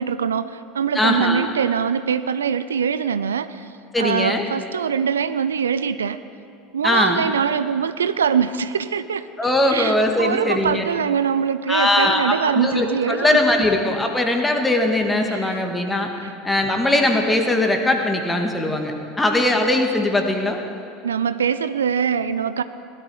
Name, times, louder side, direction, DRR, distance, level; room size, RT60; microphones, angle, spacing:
voice 1, 0.0-3.7 4.0-6.2 6.7-9.2 9.7-13.4 15.3-15.6 16.2-16.4 21.0-22.6, right 7 dB, 85° right, 13 dB, 0.4 m, -23 dB
voice 2, 0.9-1.5 3.9-4.5 6.8-7.2 9.4-10.9 11.7-16.1 16.4-20.6, left 1 dB, 10° left, 3 dB, 1.9 m, -20 dB
16.5 x 12.5 x 4.9 m, 2.6 s
hypercardioid pair, 80°, 0 cm